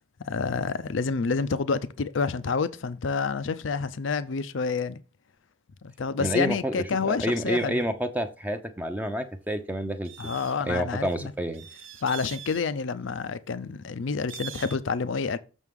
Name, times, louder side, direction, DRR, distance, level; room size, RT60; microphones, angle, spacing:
voice 1, 0.2-5.0 5.8-7.8 10.2-11.3 12.0-15.4, left 5 dB, 75° left, 0.5 m, -28 dB
voice 2, 6.2-10.3 10.7-11.7, right 1 dB, 10° right, 0.6 m, -29 dB
sound 1, 10.0-10.6 11.5-12.6 14.3-14.8, right 10 dB, 85° right, 0.8 m, -42 dB
6.7 x 6.3 x 3.6 m
head